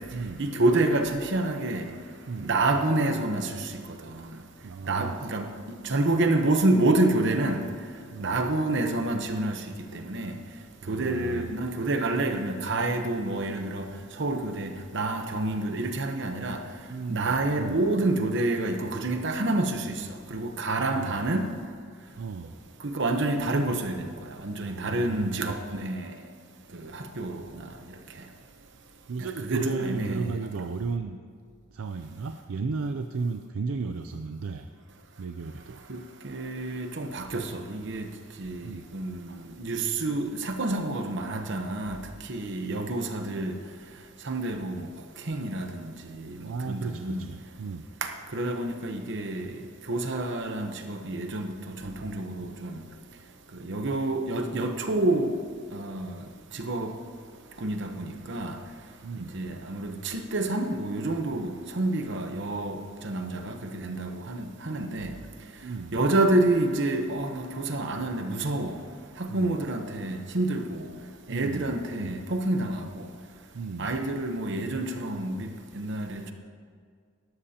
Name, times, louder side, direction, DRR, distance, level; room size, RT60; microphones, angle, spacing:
voice 1, 0.4-1.9 2.4-4.2 4.9-5.5 5.8-7.6 8.2-9.6 9.9-10.4 10.9-13.9 14.2-16.6 17.1-20.0 20.3-21.5 22.8-24.1 24.4-26.1 26.7-27.4 29.4-30.3 35.9-36.0 36.2-38.1 38.4-42.0 42.3-43.6 44.2-44.9 45.3-47.3 48.0-49.6 49.9-52.8 53.6-55.3 55.7-56.2 56.5-56.9 57.6-58.6 59.2-65.1 65.9-68.8 69.2-70.9 71.3-73.1 73.8-75.5 75.7-76.3, right 2 dB, 55° right, 5 dB, 0.9 m, -28 dB
voice 2, 4.6-5.2 8.1-8.4 10.8-11.5 16.9-17.8 20.8-21.3 22.2-22.6 24.6-25.5 29.1-31.2 31.7-34.7 35.2-35.8 38.6-38.9 46.4-47.9 59.0-59.3 65.6-66.0 69.3-69.6 71.3-72.1 73.5-74.0, right 4 dB, 75° right, 7 dB, 0.5 m, -34 dB
17.5 x 13.0 x 2.9 m, 2.1 s
head